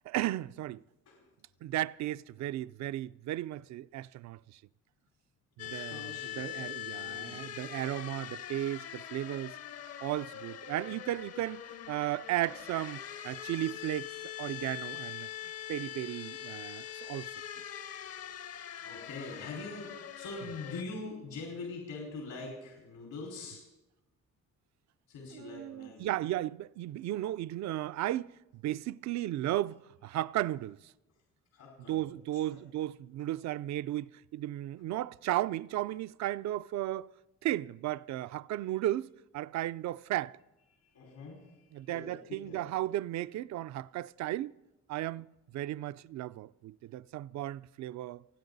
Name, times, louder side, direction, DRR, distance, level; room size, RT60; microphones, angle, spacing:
voice 1, 0.1-0.8 1.6-4.6 5.6-9.6 10.0-17.3 25.3-30.9 31.9-37.1 37.4-40.4 41.7-44.5 44.9-48.2, right 14 dB, 65° right, 0.4 m, -35 dB
voice 2, 5.6-6.6 6.9-7.4 18.8-23.6 25.1-26.2 31.5-32.1 32.4-32.6 40.8-41.6 41.9-42.1 42.4-42.7, left 3 dB, 90° left, 4.9 m, -43 dB
sound 1, 5.6-20.8, left 11 dB, 55° left, 0.8 m, -43 dB
29.0 x 10.0 x 4.0 m
cardioid pair, 90°, 30 cm